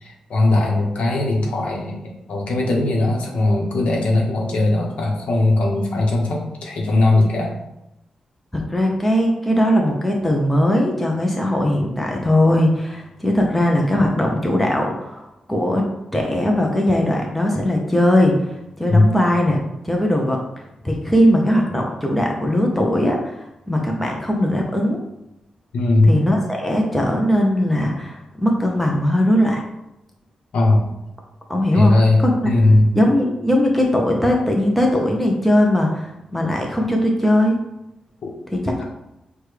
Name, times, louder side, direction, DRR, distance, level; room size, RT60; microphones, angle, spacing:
voice 1, 0.0-7.5 18.9-19.1 25.7-26.1 30.5-30.9 31.7-32.9 38.2-38.3, left 2 dB, 65° left, -1 dB, 1.0 m, -18 dB
voice 2, 8.5-15.9 16.1-19.6 19.8-20.4 20.8-25.0 26.0-29.6 31.5-31.9 32.2-32.6 32.9-37.5 38.5-38.8, left 1 dB, 5° left, 0 dB, 0.5 m, -19 dB
6.4 x 2.2 x 3.2 m, 0.88 s
wide cardioid pair, 175°, 2 cm